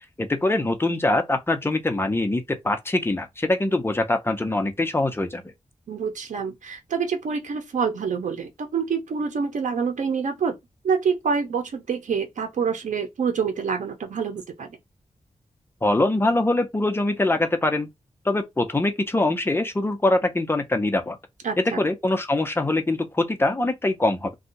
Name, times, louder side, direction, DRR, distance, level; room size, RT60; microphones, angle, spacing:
voice 1, 0.2-5.4 15.8-17.9 18.2-21.2 21.6-24.3, left 2 dB, 20° left, 0.7 m, -23 dB
voice 2, 5.9-10.5 10.8-14.7 21.4-21.8, right 6 dB, 85° right, 0.8 m, -26 dB
2.7 x 2.3 x 3.9 m
wide cardioid pair, 90°, 13 cm